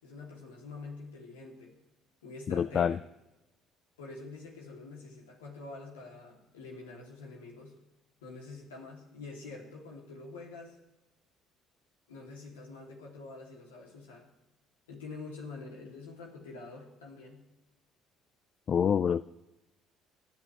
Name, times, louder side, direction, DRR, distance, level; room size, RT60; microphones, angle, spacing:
voice 1, 0.0-1.8 2.2-3.0 4.0-7.8 8.2-10.8 12.1-14.3 14.9-17.4, left 3 dB, 85° left, -1 dB, 3.1 m, -46 dB
voice 2, 2.5-3.0 18.7-19.2, left 7 dB, 45° left, 16 dB, 0.4 m, -26 dB
27.5 x 9.9 x 3.4 m, 0.99 s
hypercardioid pair, 55°, 0 cm